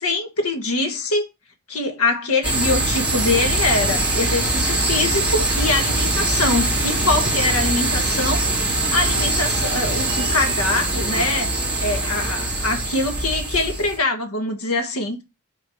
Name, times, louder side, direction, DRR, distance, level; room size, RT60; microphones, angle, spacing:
voice 1, 0.0-1.3 1.7-8.4 8.9-15.2, left 2 dB, 75° left, 1.4 m, -23 dB
sound 1, 2.4-14.0, right 2 dB, 5° right, 2.5 m, -22 dB
6.0 x 3.8 x 4.8 m
head